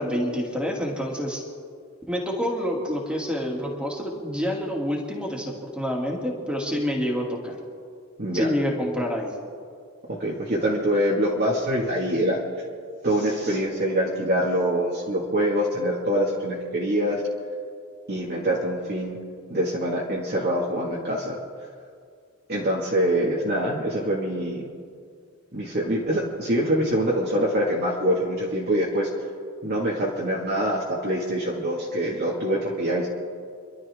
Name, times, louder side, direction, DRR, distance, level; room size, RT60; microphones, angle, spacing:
voice 1, 0.0-1.4 2.1-7.6 8.3-9.3, equal, 5° right, -2 dB, 2.5 m, -27 dB
voice 2, 10.1-12.4 13.0-17.2 18.1-19.2 19.5-21.4 22.5-24.7 25.5-29.1 29.6-33.1, equal, 45° right, -5 dB, 2.0 m, -24 dB
27.0 x 12.0 x 3.6 m, 2.1 s
head